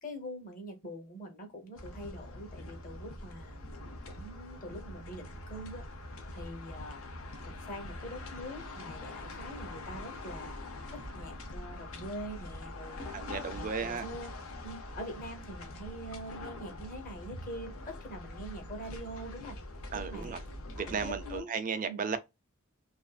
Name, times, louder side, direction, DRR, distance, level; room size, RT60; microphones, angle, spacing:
voice 1, 0.0-3.6 4.1-5.9 6.3-7.0 7.5-10.6 10.9-13.1 13.5-14.3 14.6-19.6 19.9-20.4 20.7-21.5 21.9-22.0, equal, 40° left, 0.8 m, -44 dB
sound 1, 1.8-21.4, left 2 dB, 70° left, 0.6 m, -44 dB
voice 2, 13.1-14.1 19.9-20.4 20.8-22.2, right 6 dB, 40° right, 0.4 m, -35 dB
2.6 x 2.4 x 2.2 m
head